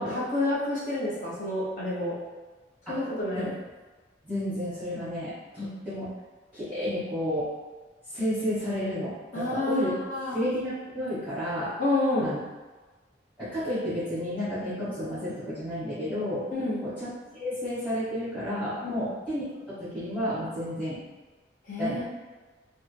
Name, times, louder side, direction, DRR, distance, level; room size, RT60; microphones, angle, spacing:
voice 1, 0.0-2.1 2.9-3.5 9.3-10.4 11.8-12.3 16.5-16.8 18.8-19.1 21.7-22.0, left 2 dB, 45° left, -7 dB, 0.9 m, -29 dB
voice 2, 4.2-6.1 6.5-7.5 8.1-9.9 10.3-11.7 12.2-12.4 13.4-16.4 16.8-21.0 21.8-22.0, equal, ahead, -17 dB, 1.2 m, -31 dB
3.5 x 2.2 x 3.3 m, 1.3 s
head